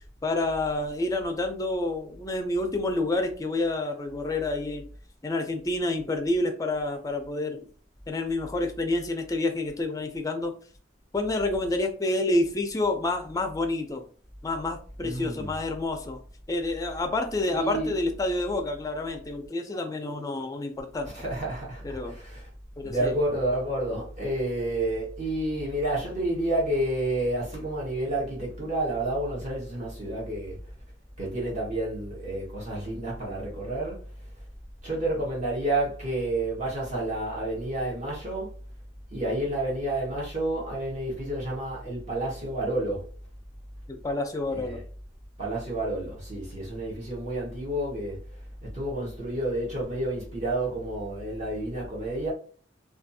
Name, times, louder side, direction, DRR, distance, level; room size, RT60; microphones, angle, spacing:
voice 1, 0.2-4.8 5.2-7.7 8.1-10.5 11.1-14.0 14.4-16.2 16.5-21.1 21.8-22.2 22.8-23.1 44.0-44.8, left 2 dB, 20° left, 0.4 m, -28 dB
voice 2, 15.0-15.5 17.5-17.9 21.1-22.5 22.8-30.6 31.2-34.0 34.8-38.5 39.1-43.1 44.5-44.8 45.4-48.2 48.6-52.3, right 1 dB, 40° right, 0.9 m, -30 dB
2.5 x 2.3 x 2.6 m
head